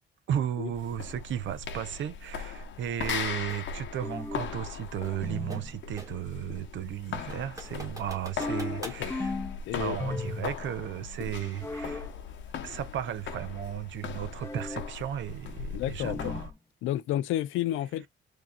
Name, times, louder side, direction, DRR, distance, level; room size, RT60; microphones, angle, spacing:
voice 1, 0.3-9.3 9.7-12.1 12.6-16.5, right 10 dB, 70° right, 0.7 m, -35 dB
sound 1, 0.7-16.5, left 6 dB, 70° left, 0.9 m, -39 dB
sound 2, 3.5-3.7 5.0-6.3 6.7-6.8 7.3-9.1, right 1 dB, 15° right, 1.7 m, -45 dB
sound 3, 4.0-4.6 5.2-5.7 8.4-9.6 10.0-10.7 11.6-12.1 14.4-14.9 16.0-16.5, left 2 dB, 15° left, 0.6 m, -35 dB
voice 2, 8.8-9.1 9.7-10.0 15.7-16.4 16.8-18.1, left 13 dB, 85° left, 0.5 m, -31 dB
4.7 x 2.7 x 2.3 m
cardioid pair, 90°, 20 cm